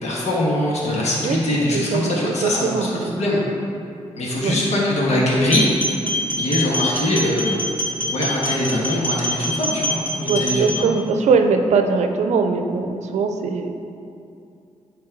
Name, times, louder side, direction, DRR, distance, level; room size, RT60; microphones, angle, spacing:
voice 1, 0.0-3.4 4.1-5.7 6.4-7.7 8.1-10.9, left 1 dB, 70° left, -4 dB, 1.5 m, -22 dB
voice 2, 1.7-3.2 4.4-4.6 10.3-13.7, right 4 dB, 75° right, 6 dB, 0.5 m, -21 dB
sound 1, 5.4-10.8, left 1 dB, 15° left, 1.5 m, -25 dB
8.7 x 3.4 x 4.6 m, 2.6 s
cardioid pair, 70°, 12 cm